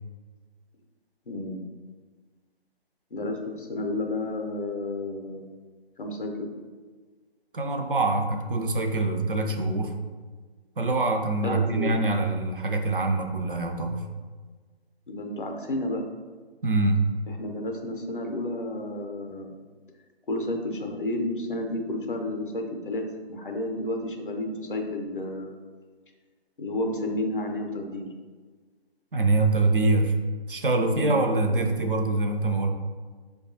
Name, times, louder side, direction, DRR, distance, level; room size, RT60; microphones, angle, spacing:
voice 1, 1.3-1.6 3.1-5.5 6.0-6.5 11.4-12.0 15.1-16.0 17.4-19.5 20.3-25.5 26.6-28.1 30.9-31.2, left 1 dB, 55° left, 3 dB, 0.6 m, -31 dB
voice 2, 7.5-9.9 10.8-14.1 16.6-17.0 29.1-30.2 30.5-32.7, right 2 dB, 55° right, 3 dB, 0.5 m, -24 dB
4.7 x 2.3 x 2.6 m, 1.4 s
figure-of-eight pair, 150°, 31 cm